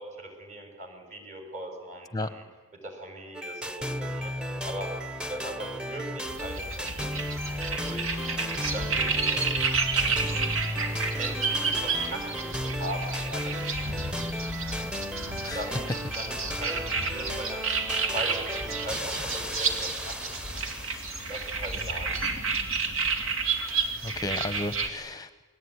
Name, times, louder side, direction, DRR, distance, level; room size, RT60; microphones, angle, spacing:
voice 1, 0.0-2.4 2.8-4.3 4.6-4.9 5.3-6.9 7.8-9.5 11.1-14.3 15.5-16.8 17.1-17.7 18.1-20.4 21.3-22.2, right 1 dB, 40° right, 4 dB, 6.2 m, -39 dB
sound 1, 3.3-21.5, equal, 5° right, 1.0 m, -35 dB
sound 2, 6.2-24.9, right 4 dB, 90° right, 2.9 m, -31 dB
voice 2, 15.4-15.8 17.2-17.4 24.0-25.4, left 2 dB, 20° left, 11 dB, 0.8 m, -34 dB
29.5 x 21.0 x 9.7 m, 1.4 s
head